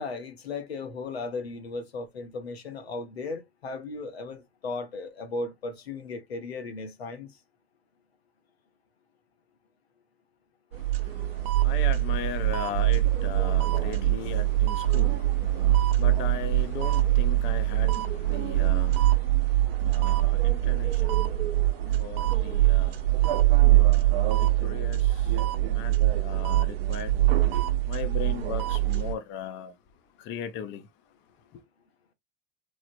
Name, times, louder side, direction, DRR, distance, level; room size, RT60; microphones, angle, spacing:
voice 1, 0.0-7.3, left 3 dB, 90° left, 0.7 m, -36 dB
voice 2, 10.7-27.2 27.8-29.8 30.2-30.9 31.5-31.6, left 8 dB, 40° left, 0.5 m, -39 dB
sound 1, 10.7-29.1, right 15 dB, 75° right, 0.5 m, -23 dB
3.2 x 2.0 x 2.5 m
hypercardioid pair, 85°, 30 cm